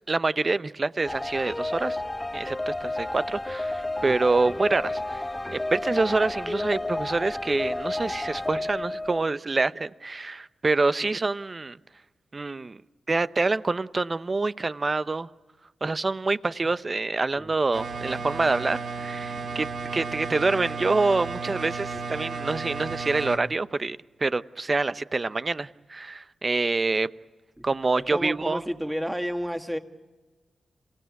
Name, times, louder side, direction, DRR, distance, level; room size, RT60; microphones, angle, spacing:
voice 1, 0.1-2.0 2.3-5.2 5.5-11.8 12.3-12.8 13.1-15.3 15.8-19.7 19.9-27.1 27.6-28.6, right 3 dB, 40° right, 15 dB, 0.7 m, -26 dB
sound 1, 1.1-9.2, left 2 dB, 15° left, 0.8 m, -31 dB
sound 2, 17.7-23.4, right 4 dB, 75° right, 1.8 m, -33 dB
voice 2, 27.9-29.8, equal, 5° right, 6 dB, 2.1 m, -31 dB
26.5 x 17.0 x 9.4 m, 1.2 s
cardioid pair, 50°, 0 cm